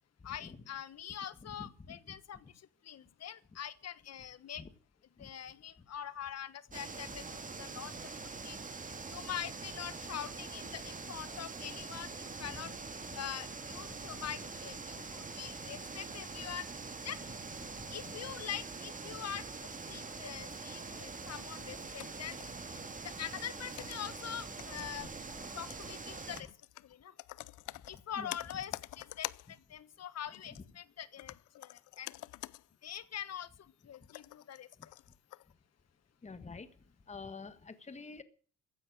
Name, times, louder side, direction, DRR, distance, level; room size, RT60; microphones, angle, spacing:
voice 1, 0.2-2.5 2.8-4.6 5.2-7.2 7.6-8.1 8.4-8.6 9.1-12.7 13.1-16.7 17.0-17.2 17.9-22.4 23.0-25.1 25.5-26.5 26.8-27.1 27.9-32.2 32.8-33.5 33.8-34.7, left 10 dB, 55° left, 17 dB, 1.3 m, -44 dB
voice 2, 1.4-2.0 5.2-5.3 7.1-7.2 8.5-8.6 12.4-12.7 13.9-14.1 17.8-18.0 25.0-25.1 28.2-28.3 36.2-36.7 37.1-38.2, left 4 dB, 25° left, 12 dB, 1.5 m, -48 dB
sound 1, 6.7-26.4, right 4 dB, 25° right, 2.3 m, -44 dB
sound 2, 21.3-23.0 23.4-29.6 30.3-30.7 31.2-32.7 33.0-33.1 33.7-35.5, left 17 dB, 85° left, 0.6 m, -48 dB
15.5 x 9.8 x 7.5 m, 0.43 s
cardioid pair, 90°, 30 cm